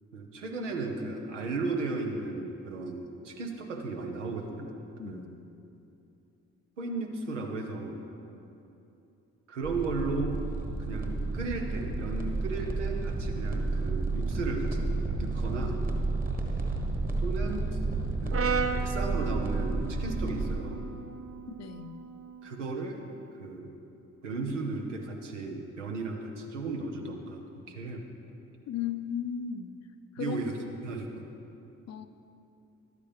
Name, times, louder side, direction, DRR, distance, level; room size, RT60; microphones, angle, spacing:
voice 1, 0.1-4.7 5.0-5.3 6.8-8.0 9.5-10.4 10.8-14.9 15.2-15.8 17.2-17.8 18.2-20.9 22.4-23.1 23.3-23.8 24.2-28.1 30.2-31.3, right 3 dB, 85° right, 2 dB, 0.8 m, -35 dB
voice 2, 5.0-5.5 21.5-22.0 28.7-29.7 30.2-30.4 31.9-32.1, left 8 dB, 50° left, 10 dB, 0.6 m, -36 dB
sound 1, 9.6-20.6, right 3 dB, 25° right, 1.3 m, -31 dB
Brass instrument, 18.3-22.6, right 5 dB, 40° right, 0.7 m, -36 dB
12.0 x 8.3 x 3.4 m, 2.8 s
figure-of-eight pair, 40°, 35 cm